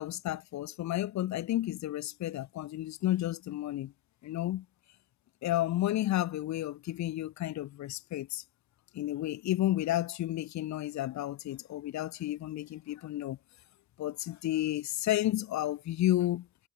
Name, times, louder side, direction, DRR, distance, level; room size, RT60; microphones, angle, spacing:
voice 1, 0.0-3.9 4.2-4.6 5.4-8.4 8.9-13.4 14.0-16.5, left 14 dB, 70° left, 0.8 m, -32 dB
cardioid pair, 90°, 30 cm